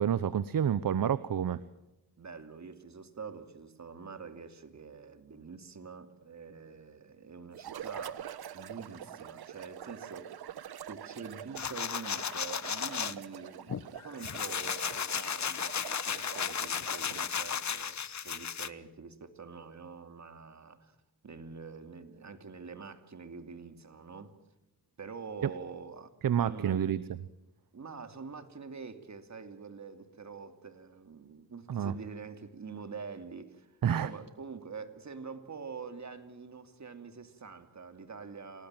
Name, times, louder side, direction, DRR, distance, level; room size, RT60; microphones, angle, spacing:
voice 1, 0.0-1.6 25.4-25.5 26.2-27.0 31.7-31.9 33.8-34.1, right 9 dB, 65° right, 0.9 m, -28 dB
voice 2, 2.2-10.4 10.8-15.8 16.0-20.9 21.2-24.4 25.0-26.1 26.4-26.8 27.7-33.7 34.0-38.7, right 5 dB, 45° right, 2.7 m, -46 dB
sound 1, 7.5-17.4, right 10 dB, 85° right, 1.0 m, -45 dB
sound 2, 11.6-13.1 13.7-18.7, left 7 dB, 50° left, 1.0 m, -34 dB
28.0 x 19.5 x 9.1 m
cardioid pair, 80°, 37 cm